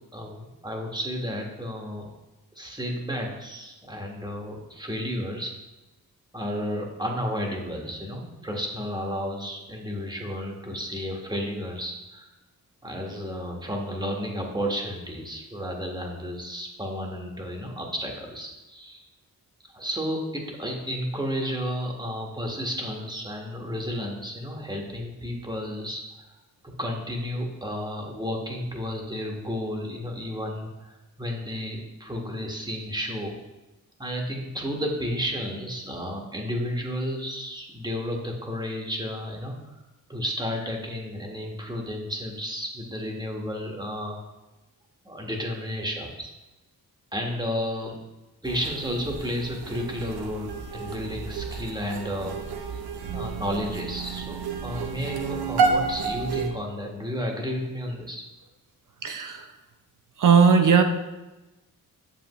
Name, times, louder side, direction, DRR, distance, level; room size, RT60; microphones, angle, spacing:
voice 1, 0.1-2.1 2.5-5.5 6.3-12.3 12.8-19.1 19.7-26.3 26.8-33.3 34.0-39.7 40.1-44.2 45.0-46.3 47.1-47.9 48.4-52.4 52.7-52.8 53.1-58.2, equal, 10° right, 0 dB, 1.4 m, -32 dB
sound 1, 48.4-56.5, right 5 dB, 90° right, 0.8 m, -30 dB
voice 2, 59.0-59.5 60.2-60.8, right 6 dB, 55° right, 6 dB, 0.7 m, -18 dB
7.0 x 5.6 x 3.0 m, 1.0 s
cardioid pair, 65°, 38 cm